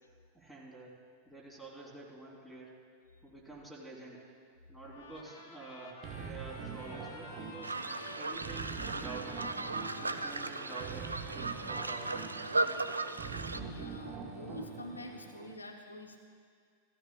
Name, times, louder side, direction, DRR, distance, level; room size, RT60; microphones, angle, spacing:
voice 1, 0.3-0.9 1.2-2.8 3.2-4.2 4.7-7.8 8.1-9.6 10.0-12.2, right 3 dB, 5° right, -5 dB, 3.4 m, -48 dB
Trumpet, 4.8-12.7, left 2 dB, 55° left, 2.1 m, -52 dB
sound 1, 6.0-15.6, right 6 dB, 35° right, 1.0 m, -45 dB
sound 2, 7.6-13.6, right 2 dB, 80° right, 0.4 m, -36 dB
voice 2, 9.8-10.2 12.6-16.2, left 2 dB, 80° left, 4 dB, 0.7 m, -48 dB
16.5 x 14.5 x 2.3 m, 2.2 s
figure-of-eight pair, 90°, 0 cm